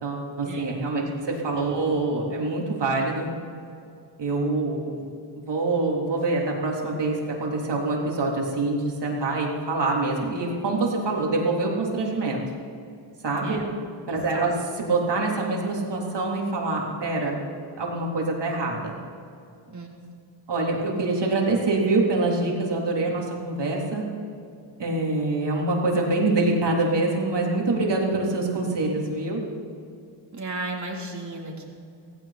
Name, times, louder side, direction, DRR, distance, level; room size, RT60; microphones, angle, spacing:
voice 1, 0.0-3.3 4.2-5.0 5.3-12.4 13.2-13.6 14.1-14.5 14.8-17.4 17.8-19.0 20.5-24.0 24.8-29.4, right 2 dB, 55° right, -2 dB, 3.8 m, -25 dB
voice 2, 1.0-1.4 13.4-13.7 14.1-14.5 19.7-19.9 30.3-31.6, right 2 dB, 35° right, -2 dB, 3.7 m, -35 dB
16.5 x 16.5 x 4.4 m, 2.5 s
cardioid pair, 75°, 48 cm